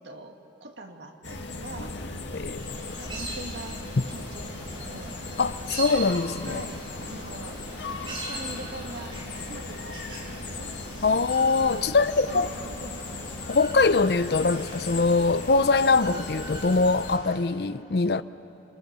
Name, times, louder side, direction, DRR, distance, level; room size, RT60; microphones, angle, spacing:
voice 1, 0.0-2.0 3.0-5.2 6.4-7.6 8.1-10.8 11.9-12.0 12.3-12.5 12.8-13.0, right 1 dB, 75° right, 2.1 m, -43 dB
sound 1, 1.2-17.2, left 2 dB, 85° left, 2.0 m, -37 dB
voice 2, 2.3-2.9 5.4-6.6 11.0-12.5 13.5-18.2, left 4 dB, 60° left, 0.6 m, -23 dB
sound 2, 2.6-17.4, right 2 dB, 30° right, 4.3 m, -42 dB
29.5 x 27.0 x 6.9 m
head